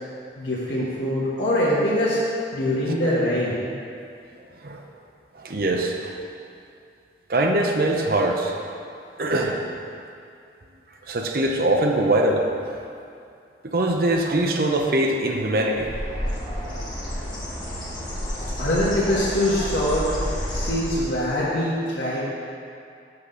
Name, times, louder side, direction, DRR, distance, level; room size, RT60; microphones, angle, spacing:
voice 1, 0.4-2.2 2.5-3.7 18.6-20.1 20.5-22.2, left 1 dB, 85° left, -9 dB, 1.4 m, -23 dB
voice 2, 5.4-6.1 7.3-8.6 9.2-9.6 11.1-12.5 13.6-15.9, right 1 dB, 55° right, 2 dB, 0.7 m, -22 dB
Bird, 15.7-21.3, equal, 25° left, 1.5 m, -30 dB
5.9 x 5.7 x 6.8 m, 2.5 s
head